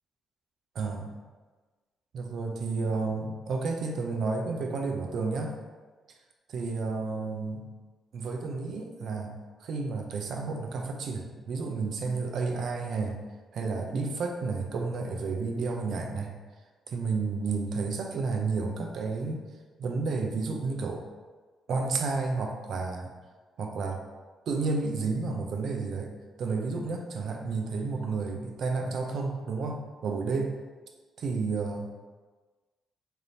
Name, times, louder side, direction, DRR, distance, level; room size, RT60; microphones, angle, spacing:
voice 1, 0.7-1.2 2.1-5.5 6.5-7.7 8.1-9.3 9.6-13.2 13.5-16.3 16.9-19.4 19.8-21.0 21.7-23.1 23.6-24.0 24.5-26.1 26.4-30.5 31.2-31.9, right 4 dB, 65° right, 3 dB, 0.6 m, -31 dB
3.4 x 2.7 x 4.0 m, 1.3 s
cardioid pair, 95°, 0 cm